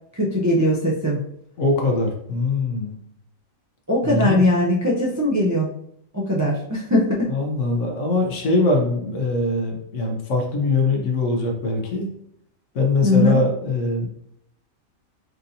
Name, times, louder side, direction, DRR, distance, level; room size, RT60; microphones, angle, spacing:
voice 1, 0.1-1.2 3.9-5.7 6.1-7.3 13.0-13.4, left 1 dB, 25° right, -5 dB, 0.3 m, -20 dB
voice 2, 1.6-3.0 4.0-4.4 7.3-12.1 12.7-14.1, left 2 dB, 65° left, 1 dB, 1.1 m, -22 dB
4.4 x 2.7 x 2.7 m, 0.72 s
omnidirectional pair, 1.5 m